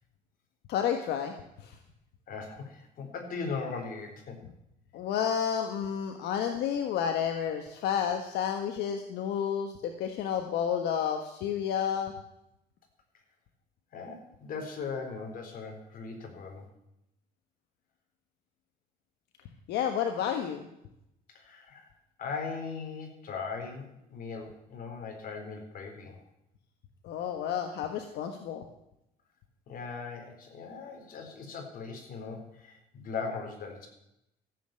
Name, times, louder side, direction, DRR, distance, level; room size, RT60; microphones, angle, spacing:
voice 1, 0.7-1.8 4.9-12.1 19.7-20.7 27.0-28.6, left 8 dB, 80° left, 5 dB, 1.4 m, -31 dB
voice 2, 2.3-4.4 13.9-16.7 21.3-21.9 22.2-26.2 29.7-33.9, left 5 dB, 55° left, 3 dB, 4.1 m, -39 dB
14.5 x 7.9 x 8.9 m, 0.84 s
cardioid pair, 110°, 17 cm